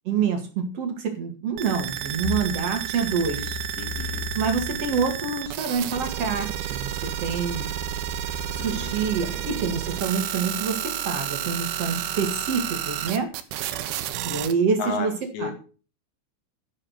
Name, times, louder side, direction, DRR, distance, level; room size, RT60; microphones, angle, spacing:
voice 1, 0.1-3.6 4.4-7.7 8.5-13.3 14.2-15.1 15.4-15.5, right 5 dB, 60° right, 4 dB, 1.6 m, -27 dB
sound 1, 1.6-14.5, right 11 dB, 75° right, 3.1 m, -31 dB
sound 2, 2.2-5.2 5.7-9.0, left 7 dB, 70° left, 6.7 m, -37 dB
voice 2, 3.8-4.3 8.6-9.5 14.8-15.5, left 4 dB, 85° left, 4 dB, 5.3 m, -34 dB
12.0 x 6.7 x 7.8 m, 0.37 s
omnidirectional pair, 6.0 m